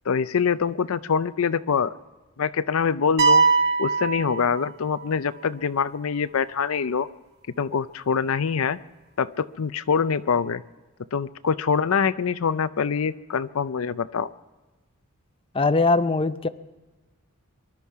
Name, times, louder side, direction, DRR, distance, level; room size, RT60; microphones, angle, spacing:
voice 1, 0.1-2.0 2.4-3.4 3.8-7.1 7.6-8.8 9.2-10.6 11.1-14.3, left 6 dB, 75° left, 13 dB, 0.5 m, -24 dB
sound 1, 3.2-5.1, right 4 dB, 50° right, 1.0 m, -21 dB
voice 2, 15.5-16.5, left 3 dB, 25° left, 11 dB, 0.5 m, -21 dB
24.0 x 12.0 x 4.7 m, 1.2 s
head